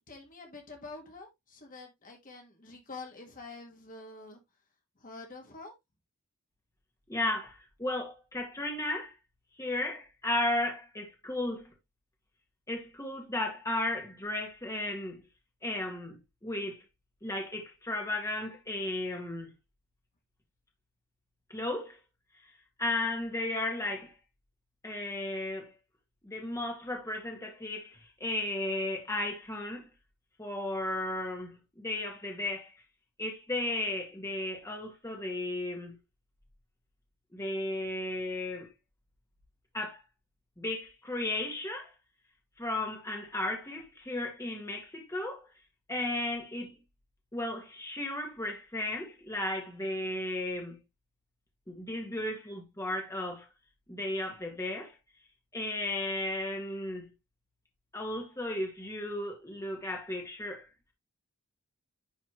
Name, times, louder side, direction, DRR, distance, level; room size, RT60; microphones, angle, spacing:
voice 1, 0.1-4.4 5.0-5.7, left 3 dB, 40° left, 1.8 m, -47 dB
voice 2, 7.1-9.1 9.6-11.7 12.7-15.2 15.6-16.8 17.2-19.5 21.5-22.0 22.8-24.1 24.8-25.7 26.2-29.9 30.4-32.7 33.2-36.0 37.3-38.7 39.7-40.0 40.6-41.9 42.6-45.5 45.9-46.8 47.3-50.8 51.7-53.5 53.9-55.0 55.5-57.1 57.9-60.7, left 1 dB, 15° left, 1.9 m, -34 dB
10.5 x 4.2 x 3.1 m
head